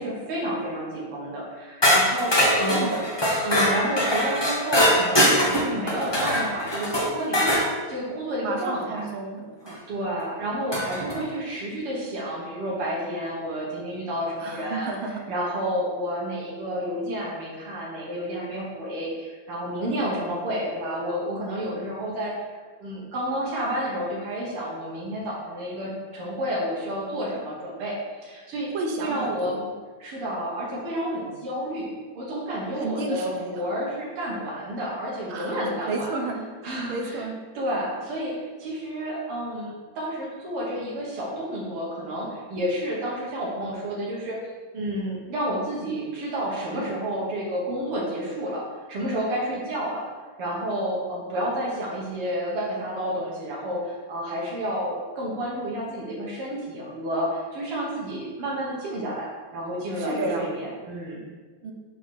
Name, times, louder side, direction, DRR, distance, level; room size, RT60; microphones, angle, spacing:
voice 1, 0.0-3.1 3.4-9.1 9.9-28.7 29.0-29.6 30.0-36.1 36.6-37.2 37.5-44.4 44.7-50.0 50.4-61.2, equal, 90° right, -5 dB, 2.3 m, -30 dB
sound 1, 1.8-7.7 9.7-9.8 10.7-11.2, equal, 15° left, 1.1 m, -22 dB
voice 2, 2.6-3.0 8.4-9.8 14.4-15.1 28.7-29.6 32.8-33.6 35.3-35.5 35.9-37.4 60.0-60.5 61.6-61.7, right 3 dB, 70° right, 3 dB, 1.6 m, -31 dB
5.9 x 4.3 x 6.3 m, 1.4 s
omnidirectional pair, 2.4 m